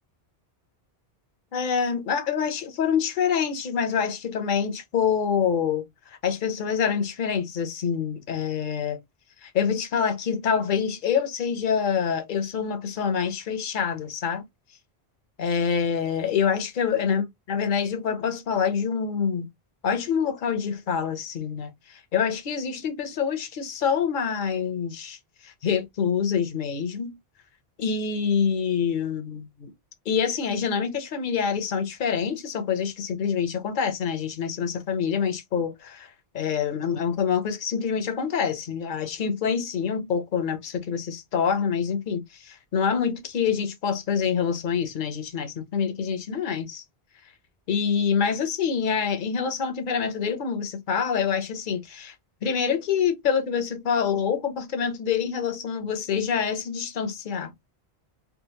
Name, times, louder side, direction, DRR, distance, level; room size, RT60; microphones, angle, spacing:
voice 1, 1.5-9.0 9.4-14.4 15.4-19.5 19.8-25.2 25.4-27.2 27.8-29.7 30.1-46.8 47.7-52.1 52.4-57.5, left 7 dB, 55° left, 0.8 m, -26 dB
3.7 x 2.3 x 2.8 m
omnidirectional pair, 1.1 m